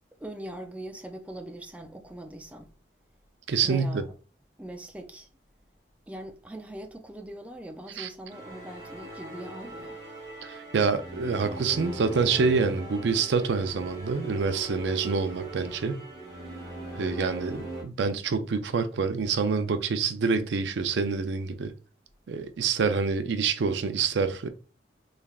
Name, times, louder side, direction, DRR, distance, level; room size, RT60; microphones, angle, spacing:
voice 1, 0.2-2.7 3.6-4.1 4.6-5.3 6.1-10.0, right 1 dB, 10° right, 0.4 m, -41 dB
voice 2, 3.5-4.0 8.0-8.1 10.4-16.0 17.0-21.7 22.3-24.5, right 5 dB, 70° right, 0.4 m, -27 dB
sound 1, 8.3-17.8, right 2 dB, 25° right, 1.3 m, -39 dB
3.5 x 3.2 x 2.3 m
head